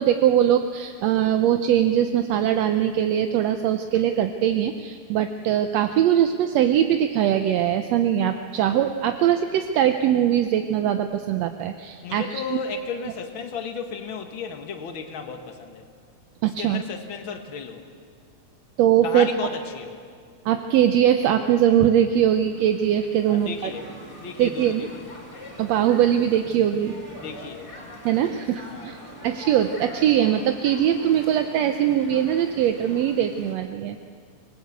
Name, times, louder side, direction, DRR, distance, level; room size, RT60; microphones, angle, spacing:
voice 1, 0.0-12.6 16.4-16.8 18.8-19.3 20.4-23.7 24.4-24.9 25.6-27.0 28.0-29.0 29.2-34.0, right 10 dB, 75° right, 7 dB, 1.7 m, -21 dB
voice 2, 12.0-15.9 16.6-17.8 19.0-20.0 23.3-23.9 24.2-24.9 27.2-27.7 28.7-28.9, left 5 dB, 45° left, 5 dB, 2.0 m, -34 dB
sound 1, 21.9-33.6, equal, 10° left, 3.5 m, -43 dB
26.0 x 19.5 x 8.1 m, 2.1 s
omnidirectional pair, 3.7 m